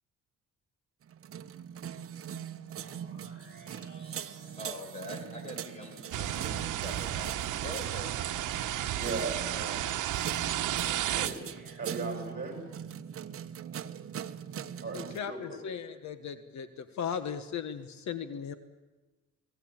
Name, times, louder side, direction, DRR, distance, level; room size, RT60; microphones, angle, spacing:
sound 1, 1.0-15.2, right 9 dB, 45° right, 1.1 m, -42 dB
sound 2, 2.7-12.6, right 2 dB, 40° left, 4.6 m, -59 dB
voice 1, 3.6-8.5, left 1 dB, 20° left, 4 dB, 6.3 m, -45 dB
sound 3, 6.1-11.3, right 12 dB, 75° right, 1.2 m, -32 dB
voice 2, 8.9-9.9 11.1-11.4 11.8-12.6 14.8-15.6, right 3 dB, 30° right, 4 dB, 6.7 m, -37 dB
voice 3, 14.9-18.5, left 7 dB, 60° left, 11 dB, 1.4 m, -37 dB
29.0 x 19.0 x 9.0 m, 1.2 s
cardioid pair, 150°, 31 cm